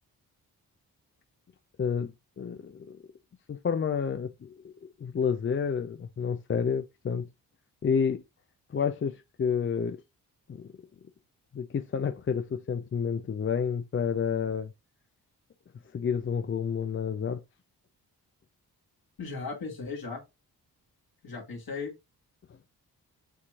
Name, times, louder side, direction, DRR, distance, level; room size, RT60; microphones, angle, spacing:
voice 1, 1.8-2.1 2.4-3.0 3.5-4.5 5.0-7.2 7.8-8.2 8.7-10.0 10.5-10.7 11.5-14.7 15.9-17.4, left 6 dB, 30° left, 0.5 m, -29 dB
voice 2, 19.2-20.2 21.2-21.9, left 4 dB, 55° left, 2.1 m, -36 dB
6.9 x 3.0 x 2.4 m
supercardioid pair, 40°, 42 cm